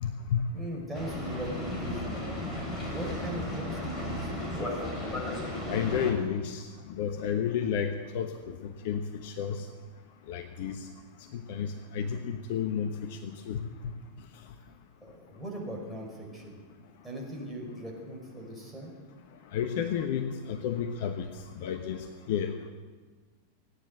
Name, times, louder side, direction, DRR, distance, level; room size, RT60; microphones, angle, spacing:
voice 1, 0.0-0.4 5.7-6.6 6.9-8.5 8.8-9.6 10.3-10.7 11.5-12.9 13.2-13.6 19.5-21.3 21.6-22.0 22.3-22.5, left 8 dB, 50° left, 7 dB, 1.0 m, -31 dB
voice 2, 0.5-2.2 2.9-5.0 15.0-16.6 17.0-18.9, right 1 dB, ahead, -2 dB, 5.3 m, -39 dB
Boat Water vehicle, 0.9-6.1, left 1 dB, 20° left, 5.2 m, -35 dB
17.0 x 9.8 x 8.0 m, 1.4 s
figure-of-eight pair, 90°, 0 cm